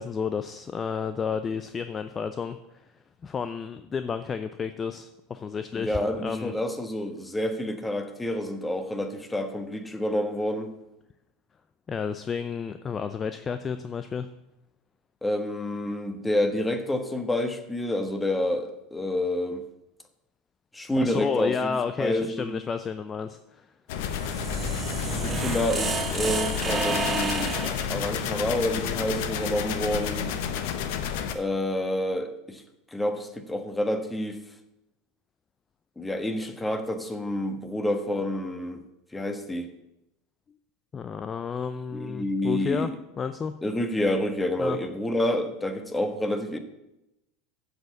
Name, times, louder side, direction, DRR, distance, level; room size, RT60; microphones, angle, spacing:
voice 1, 0.0-2.6 3.2-6.5 11.9-14.3 20.9-23.7 40.9-43.5 44.6-44.8, left 6 dB, 25° left, 10 dB, 0.6 m, -31 dB
voice 2, 5.7-10.7 15.2-19.6 20.7-21.7 22.0-22.5 25.0-30.3 31.3-32.6 32.9-34.4 36.0-38.8 39.1-39.7 41.9-42.9 43.6-46.6, left 1 dB, 10° left, 6 dB, 1.4 m, -28 dB
sound 1, 23.9-31.3, left 7 dB, 60° left, 1.1 m, -31 dB
sound 2, 24.0-27.8, right 2 dB, 25° right, 1.7 m, -30 dB
7.6 x 7.0 x 8.3 m, 0.90 s
hypercardioid pair, 80°, 0 cm